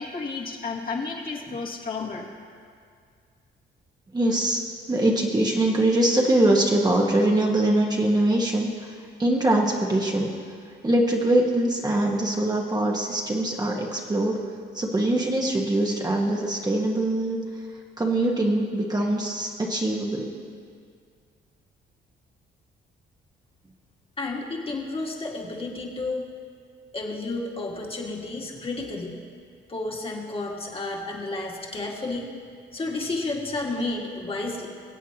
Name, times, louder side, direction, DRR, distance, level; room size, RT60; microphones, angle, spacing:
voice 1, 0.0-2.3, left 4 dB, 50° left, -3 dB, 2.1 m, -32 dB
voice 2, 4.1-4.6 4.9-10.3 10.8-14.4 14.7-17.4 18.0-20.4, right 1 dB, 20° right, -1 dB, 1.4 m, -23 dB
voice 3, 24.2-26.3 26.9-29.2 29.7-32.3 32.7-34.7, left 2 dB, 30° left, -2 dB, 2.0 m, -31 dB
24.0 x 8.2 x 3.0 m, 2.2 s
cardioid pair, 90°, 20 cm